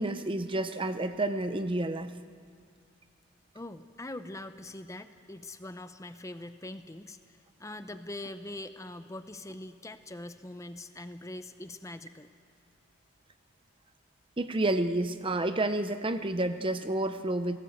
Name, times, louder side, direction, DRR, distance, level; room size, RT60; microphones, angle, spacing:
voice 1, 0.0-2.1 14.4-17.6, right 2 dB, 25° right, 10 dB, 0.7 m, -30 dB
voice 2, 3.5-12.3, left 1 dB, 15° left, 10 dB, 0.7 m, -43 dB
29.5 x 18.0 x 8.0 m, 2.2 s
head